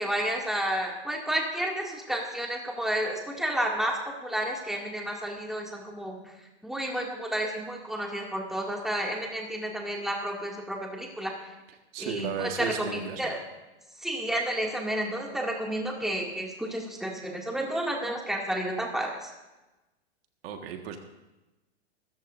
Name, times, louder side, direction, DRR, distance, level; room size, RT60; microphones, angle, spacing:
voice 1, 0.0-6.2 6.6-11.3 12.0-13.4 14.0-19.3, right 1 dB, ahead, -1 dB, 2.4 m, -31 dB
voice 2, 11.9-13.4 20.4-21.0, right 7 dB, 60° right, 4 dB, 1.7 m, -34 dB
23.0 x 14.0 x 2.7 m, 1.0 s
hypercardioid pair, 130°, 34 cm